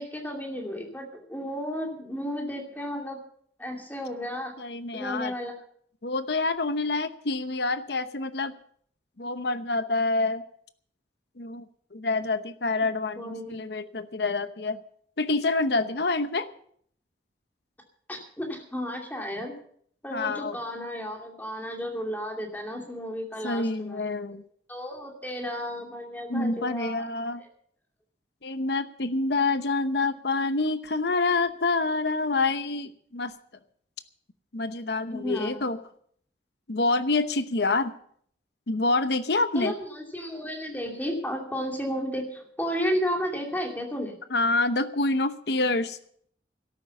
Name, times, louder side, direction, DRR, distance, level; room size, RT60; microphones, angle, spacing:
voice 1, 0.0-3.2 3.6-4.5 4.9-5.5 13.2-13.5 18.1-19.5 20.0-24.3 24.7-27.0 27.4-27.5 35.1-35.6 39.5-44.1, equal, 10° left, 2 dB, 2.7 m, -33 dB
voice 2, 4.6-5.3 6.0-8.5 9.2-10.4 11.4-11.6 11.9-14.8 15.2-16.5 20.1-20.6 23.4-24.4 26.3-27.4 28.4-33.3 34.5-35.8 36.7-37.9 38.7-39.7 44.3-46.0, left 3 dB, 65° left, 11 dB, 0.9 m, -27 dB
13.5 x 12.0 x 6.9 m, 0.63 s
head